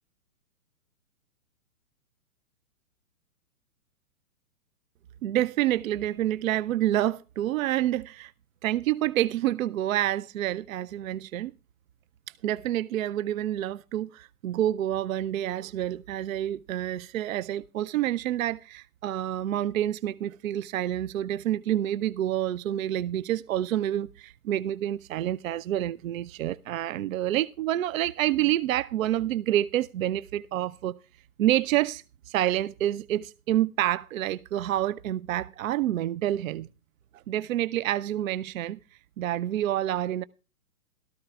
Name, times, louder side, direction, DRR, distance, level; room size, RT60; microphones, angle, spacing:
voice 1, 5.2-8.3 8.6-11.5 12.4-31.0 31.4-36.7 37.3-38.8 39.2-40.2, right 13 dB, 65° right, 0.5 m, -28 dB
17.0 x 13.5 x 2.3 m
hypercardioid pair, 130°, 44 cm